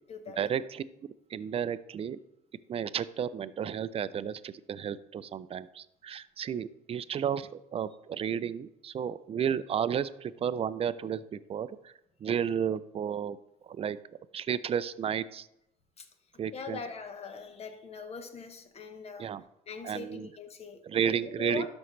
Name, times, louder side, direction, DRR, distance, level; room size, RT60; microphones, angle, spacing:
voice 1, 0.4-2.2 2.7-11.9 12.2-13.4 13.6-15.5 16.4-16.8 19.2-19.4 19.8-20.3 20.8-21.7, right 8 dB, 35° right, 15 dB, 0.4 m, -32 dB
voice 2, 16.5-19.3 19.7-21.7, left 5 dB, 40° left, 8 dB, 1.1 m, -42 dB
12.0 x 5.3 x 3.2 m, 0.82 s
cardioid pair, 110°, 17 cm